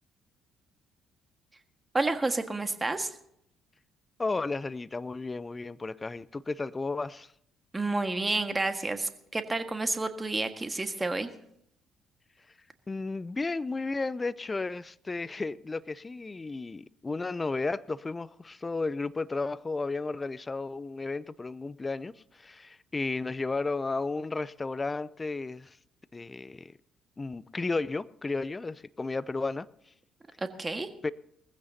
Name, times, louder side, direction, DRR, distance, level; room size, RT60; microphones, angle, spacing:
voice 1, 1.9-3.1 7.7-11.3 30.4-30.9, right 2 dB, 20° right, 1.7 m, -30 dB
voice 2, 4.2-7.3 12.9-25.8 26.1-26.7 27.2-29.7 31.0-31.1, left 3 dB, 25° left, 0.6 m, -33 dB
20.5 x 15.0 x 2.8 m
hypercardioid pair, 50°, 0 cm